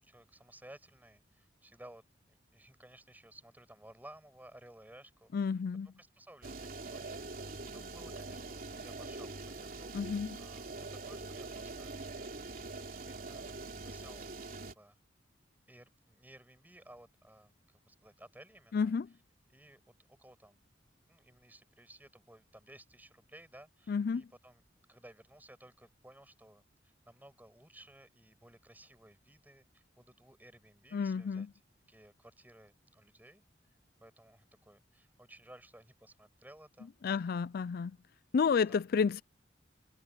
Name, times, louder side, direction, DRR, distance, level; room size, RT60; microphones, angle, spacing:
voice 1, 0.0-5.6 6.0-11.9 12.5-14.3 14.6-15.0 15.7-18.9 19.5-20.6 21.1-24.6 24.9-31.5 31.9-36.9 37.2-37.3 38.7-38.8, right 1 dB, 10° right, 6.6 m, -57 dB
voice 2, 5.3-5.9 9.9-10.4 18.7-19.1 23.9-24.3 30.9-31.5 37.0-38.0 38.3-39.2, left 5 dB, 55° left, 0.4 m, -31 dB
sound 1, 6.4-14.7, right 3 dB, 50° right, 3.2 m, -44 dB
head